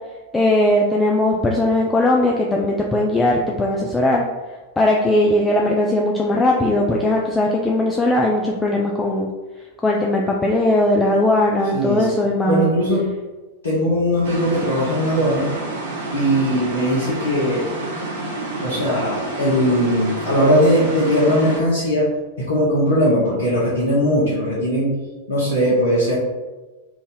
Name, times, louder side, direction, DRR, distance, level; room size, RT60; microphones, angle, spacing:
voice 1, 0.3-4.2 4.8-9.3 9.8-12.6, left 1 dB, 10° left, -1 dB, 0.4 m, -18 dB
voice 2, 11.7-13.1 13.6-15.5 16.1-17.7 18.6-22.1 22.4-25.0 25.3-26.2, equal, 70° left, -7 dB, 0.9 m, -19 dB
sound 1, 14.2-21.6, right 2 dB, 60° right, 0.8 m, -29 dB
3.0 x 2.6 x 3.7 m, 1.2 s
figure-of-eight pair, 90°, 0 cm